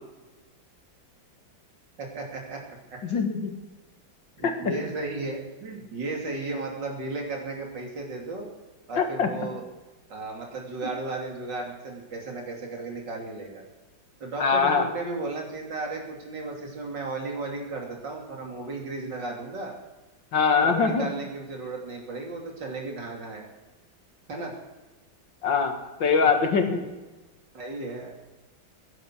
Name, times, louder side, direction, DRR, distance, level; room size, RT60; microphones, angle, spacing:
voice 1, 2.0-2.6 2.9-3.0 4.4-8.5 8.9-9.6 10.1-13.6 14.2-19.7 20.6-23.4 24.3-24.6 26.6-26.7 27.5-28.2, right 3 dB, 70° right, 0 dB, 3.6 m, -34 dB
voice 2, 3.0-3.5 4.4-4.5 9.0-9.3 14.4-14.9 20.3-21.1 25.4-25.7 26.0-26.8, left 5 dB, 80° left, 5 dB, 2.5 m, -22 dB
16.0 x 11.0 x 6.3 m, 1.1 s
omnidirectional pair, 2.0 m